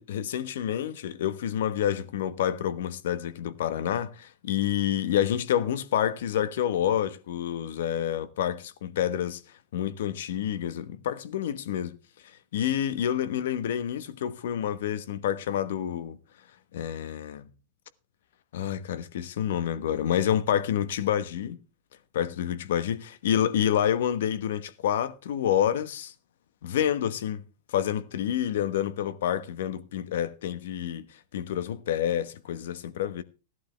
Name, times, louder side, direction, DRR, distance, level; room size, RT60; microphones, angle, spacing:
voice 1, 0.0-9.4 9.7-12.0 12.5-16.2 16.7-17.5 18.5-21.6 22.1-26.1 26.6-27.4 27.7-31.1 31.3-33.2, left 10 dB, 75° left, 1.2 m, -28 dB
15.5 x 11.0 x 3.3 m
supercardioid pair, 160°, 0 cm